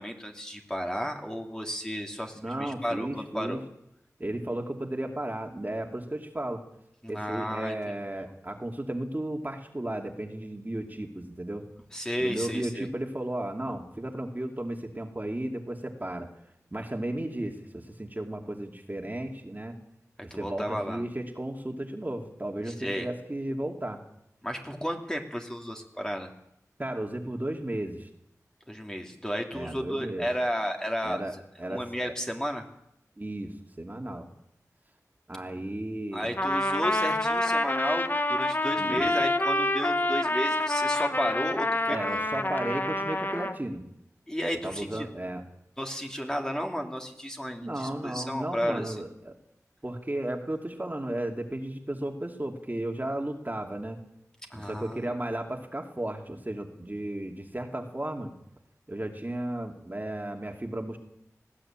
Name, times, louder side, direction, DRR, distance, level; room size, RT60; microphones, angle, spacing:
voice 1, 0.0-3.6 7.0-7.7 11.9-12.9 20.3-21.0 22.8-23.1 24.4-26.3 28.7-31.2 31.7-32.6 36.1-42.0 44.3-45.1 45.8-49.0 54.5-55.0, equal, 10° left, 2 dB, 3.0 m, -33 dB
voice 2, 2.3-3.6 4.2-6.6 7.1-11.6 12.2-16.3 16.7-19.7 20.2-24.0 26.8-28.1 29.5-30.3 31.0-32.1 33.2-34.3 35.3-36.3 38.8-39.1 41.9-43.8 44.6-45.4 47.6-49.3 49.8-54.0 54.5-58.3 58.9-61.0, right 1 dB, 30° right, 3 dB, 2.7 m, -34 dB
Trumpet, 36.4-43.6, left 1 dB, 30° left, 1.4 m, -27 dB
20.0 x 15.5 x 9.0 m, 0.78 s
wide cardioid pair, 55°, 6 cm